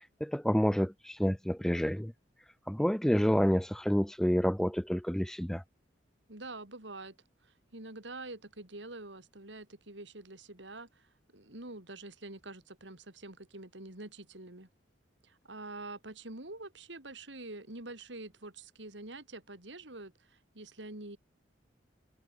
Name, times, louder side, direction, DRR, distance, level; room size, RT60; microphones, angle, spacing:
voice 1, 0.0-2.1 2.7-5.6, equal, 5° left, 0.5 m, -29 dB
voice 2, 6.3-7.2 7.4-14.7 15.2-21.2, right 2 dB, 75° right, 3.8 m, -46 dB
head